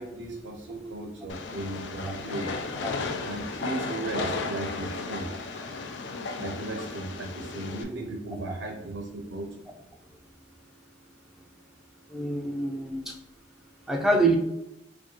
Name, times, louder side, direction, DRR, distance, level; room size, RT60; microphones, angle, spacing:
voice 1, 0.0-2.6 3.2-5.3 6.4-9.5, right 2 dB, 75° right, 3 dB, 0.5 m, -36 dB
Train, 1.3-7.8, left 4 dB, 65° left, 0.4 m, -34 dB
voice 2, 12.1-13.1 13.9-14.4, right 2 dB, ahead, 0 dB, 0.4 m, -25 dB
4.5 x 2.2 x 2.9 m, 0.87 s
head